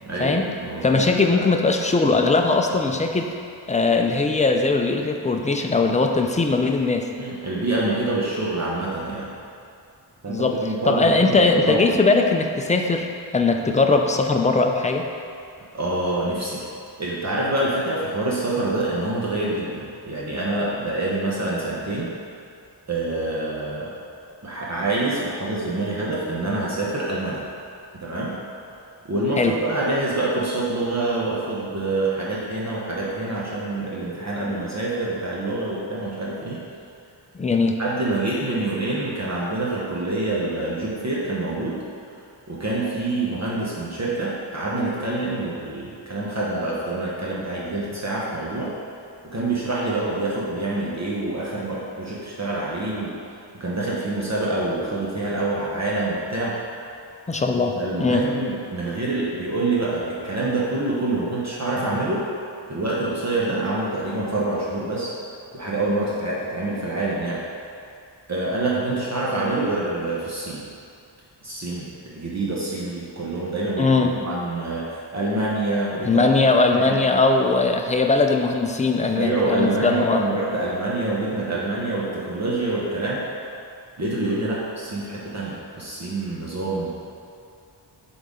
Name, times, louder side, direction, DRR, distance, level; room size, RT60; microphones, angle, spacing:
voice 1, 0.0-1.0 1.3-1.4 7.2-9.3 10.2-11.9 15.7-16.7 17.0-22.1 22.9-23.9 24.4-27.4 28.0-28.3 29.1-36.6 37.8-41.8 42.5-48.8 49.2-53.1 53.6-56.6 57.8-62.3 62.7-65.1 65.5-67.4 68.3-70.7 71.4-76.3 76.7-77.0 79.2-83.2 84.0-86.9, right 2 dB, 35° right, -6 dB, 0.9 m, -26 dB
voice 2, 0.8-3.3 3.7-7.1 10.3-10.6 10.8-13.1 13.3-15.1 29.4-29.6 37.3-37.8 57.3-58.2 73.8-74.2 76.0-80.3, left 3 dB, 20° left, 3 dB, 0.3 m, -20 dB
7.4 x 3.9 x 3.7 m, 2.4 s
wide cardioid pair, 110°, 45 cm